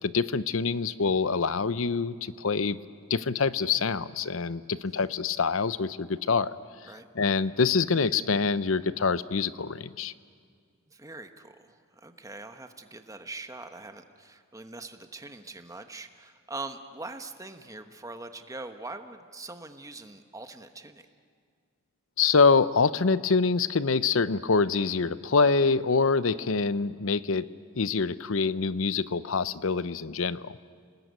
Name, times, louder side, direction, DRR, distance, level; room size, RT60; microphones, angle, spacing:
voice 1, 0.0-2.8 3.1-6.5 7.2-10.1 22.2-27.5 27.8-30.6, left 4 dB, 70° left, 16 dB, 0.7 m, -25 dB
voice 2, 10.9-21.1, right 2 dB, 15° right, 7 dB, 1.2 m, -42 dB
29.5 x 19.5 x 9.4 m, 2.1 s
head